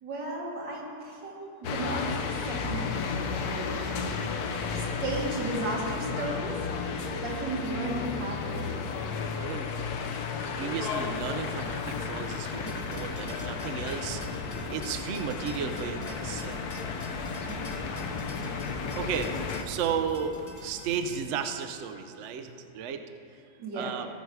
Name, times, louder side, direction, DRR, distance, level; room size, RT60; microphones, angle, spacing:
voice 1, 0.0-2.0 2.5-4.1 4.8-6.8 7.1-8.9 17.3-18.0 23.6-23.9, right 2 dB, 85° right, -3 dB, 2.6 m, -35 dB
sound 1, 1.6-19.6, left 5 dB, 65° left, 1.2 m, -33 dB
voice 2, 9.4-9.8 10.6-16.6 19.0-19.3 19.6-23.0 23.7-24.1, right 7 dB, 60° right, 7 dB, 0.7 m, -34 dB
sound 2, 12.4-21.2, left 1 dB, 15° left, 0.6 m, -45 dB
16.5 x 6.9 x 4.6 m, 2.7 s
omnidirectional pair, 1.9 m